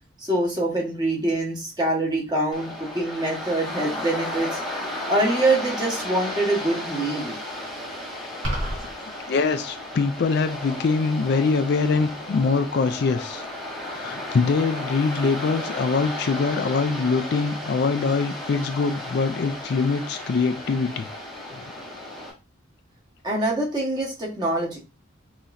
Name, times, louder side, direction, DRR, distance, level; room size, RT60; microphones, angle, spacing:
voice 1, 0.2-4.6 5.1-7.3 23.2-24.8, right 2 dB, 20° right, 1.3 m, -24 dB
Waves surf, 2.5-22.3, left 1 dB, ahead, 1.1 m, -34 dB
sound 1, 8.4-8.9, equal, 65° right, 1.6 m, -27 dB
voice 2, 9.3-13.5 13.9-21.1 21.5-21.7, left 4 dB, 55° left, 0.4 m, -23 dB
5.6 x 3.0 x 2.6 m
head